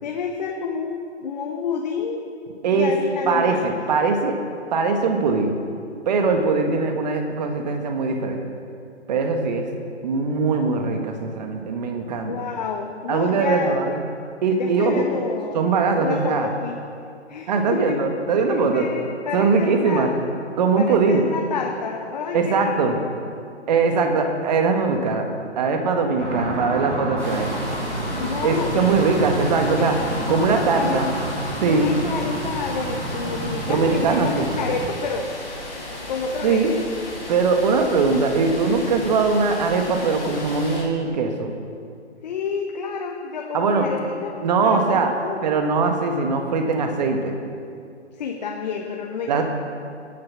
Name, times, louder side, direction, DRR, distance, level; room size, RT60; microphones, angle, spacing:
voice 1, 0.0-2.2 2.7-3.8 12.2-13.7 14.6-15.6 15.9-16.8 17.3-18.0 18.5-20.1 20.8-23.0 28.2-28.8 29.8-31.1 31.7-35.6 36.1-36.8 37.7-37.8 42.2-45.4 48.2-49.4, left 5 dB, 40° left, 1 dB, 1.1 m, -29 dB
voice 2, 3.2-4.3 4.7-5.5 6.0-8.5 9.1-9.7 10.0-12.4 13.1-14.0 14.4-15.0 15.5-16.5 17.5-18.9 19.3-20.1 20.6-21.2 22.3-23.0 23.7-25.3 25.6-27.5 28.4-29.9 30.3-31.1 31.6-31.9 33.6-34.5 36.4-36.7 37.3-41.5 43.5-43.9 44.4-45.1 45.4-47.3 49.3-49.4, right 4 dB, 35° right, 4 dB, 1.7 m, -21 dB
sound 1, 26.2-34.9, right 1 dB, 90° right, 2.2 m, -29 dB
sound 2, 27.2-40.8, left 2 dB, ahead, 0.4 m, -35 dB
16.5 x 9.3 x 6.1 m, 2.4 s
figure-of-eight pair, 135°, 35 cm